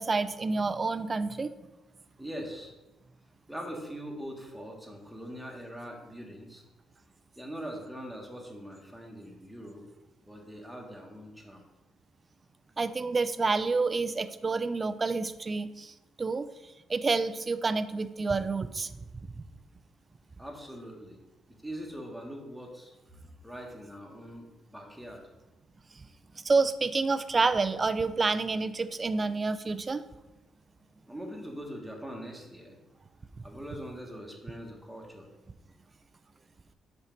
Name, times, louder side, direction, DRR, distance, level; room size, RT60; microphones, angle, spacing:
voice 1, 0.0-1.5 12.8-16.5 16.9-19.0 19.4-19.5 26.0-26.1 26.4-30.0, right 4 dB, 30° right, 13 dB, 0.4 m, -28 dB
voice 2, 2.2-2.7 3.5-6.6 7.4-9.8 10.2-11.6 20.4-21.2 21.6-25.2 31.1-32.8 33.4-35.3, equal, ahead, 0 dB, 1.4 m, -42 dB
5.5 x 4.5 x 5.3 m, 1.0 s
cardioid pair, 90°, 0 cm